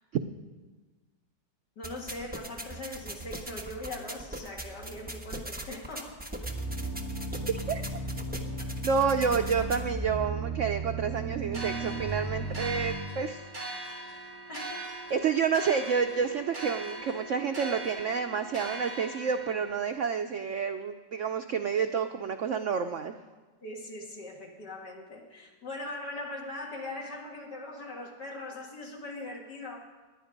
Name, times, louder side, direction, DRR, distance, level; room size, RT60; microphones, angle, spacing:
voice 1, 1.8-6.2 14.5-14.7 23.6-29.9, left 2 dB, 65° left, -1 dB, 2.9 m, -41 dB
sound 1, 1.8-9.8, right 1 dB, 5° right, 0.8 m, -41 dB
sound 2, 6.4-12.9, right 3 dB, 15° left, 3.5 m, -35 dB
voice 2, 8.8-13.5 15.1-23.2, right 6 dB, 75° right, 7 dB, 0.7 m, -29 dB
sound 3, 11.5-19.7, right 2 dB, 25° right, 3.5 m, -40 dB
19.0 x 10.5 x 5.2 m, 1.3 s
omnidirectional pair, 2.0 m